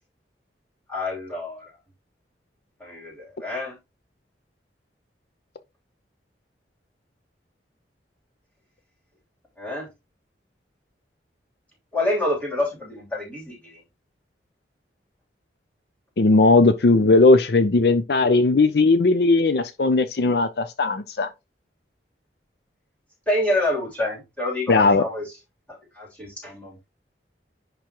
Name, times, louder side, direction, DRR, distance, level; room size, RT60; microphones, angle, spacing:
voice 1, 0.9-1.6 2.8-3.8 9.6-9.9 11.9-13.8 23.3-25.2 25.7-26.9, left 1 dB, 10° left, 3.2 m, -27 dB
voice 2, 16.2-21.3 24.7-25.0, left 3 dB, 65° left, 0.5 m, -18 dB
10.5 x 3.7 x 3.0 m
head